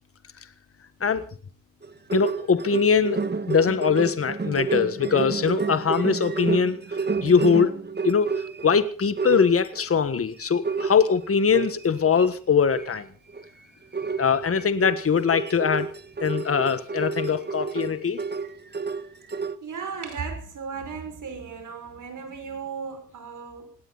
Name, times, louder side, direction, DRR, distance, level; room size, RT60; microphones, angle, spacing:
sound 1, 1.8-8.7 9.2-9.8 10.4-12.3 12.7-13.0 13.3-13.5 13.9-19.6, right 5 dB, 30° right, 1.5 m, -30 dB
voice 1, 2.1-6.8 7.2-7.7 8.0-8.3 8.6-13.1 14.2-15.9 16.2-18.2, left 6 dB, 45° left, 1.6 m, -22 dB
voice 2, 19.6-23.8, right 5 dB, 70° right, 5.6 m, -35 dB
19.0 x 18.0 x 4.1 m
cardioid pair, 75°, 32 cm